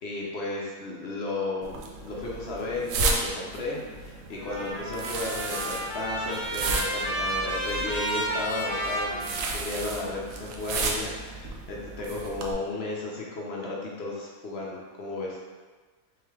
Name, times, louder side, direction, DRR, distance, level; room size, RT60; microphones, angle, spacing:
voice 1, 0.0-15.4, left 2 dB, 55° left, -3 dB, 0.8 m, -34 dB
sound 1, 1.6-12.5, right 3 dB, 75° right, 1.0 m, -34 dB
Trumpet, 4.3-10.0, right 1 dB, 25° left, 0.6 m, -32 dB
3.8 x 3.4 x 3.2 m, 1.4 s
omnidirectional pair, 1.5 m